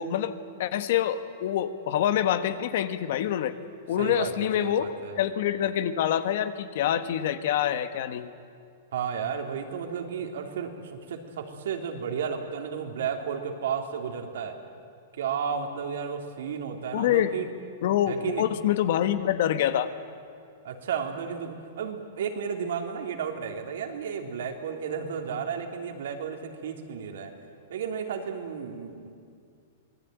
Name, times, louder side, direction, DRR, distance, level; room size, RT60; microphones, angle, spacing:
voice 1, 0.0-3.6 3.9-8.3 16.9-17.3 17.8-19.9, left 10 dB, 60° left, 11 dB, 1.5 m, -26 dB
voice 2, 4.0-5.2 8.9-14.6 15.2-17.5 18.1-18.4 20.6-27.3 27.7-29.1, right 7 dB, 75° right, 4 dB, 3.2 m, -33 dB
26.0 x 19.5 x 9.4 m, 2.3 s
supercardioid pair, 155°, 0 cm